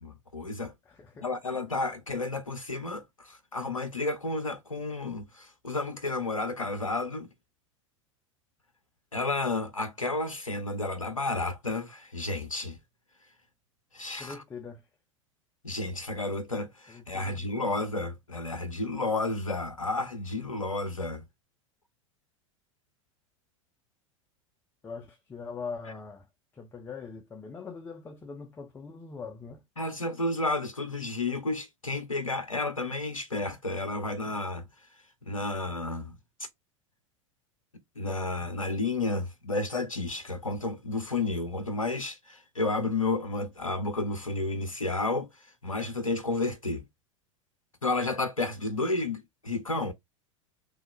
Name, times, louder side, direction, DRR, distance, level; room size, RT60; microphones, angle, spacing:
voice 1, 0.0-0.7 1.2-7.3 9.1-12.8 13.9-14.4 15.6-21.2 29.8-34.6 35.3-36.1 36.4-36.5 38.0-46.8 47.8-49.9, left 2 dB, 90° left, 0.4 m, -31 dB
voice 2, 0.9-1.3 14.2-14.9 16.9-17.7 24.8-26.3 26.5-29.6, left 5 dB, 10° left, 0.3 m, -42 dB
3.1 x 2.0 x 3.9 m
figure-of-eight pair, 85°, 17 cm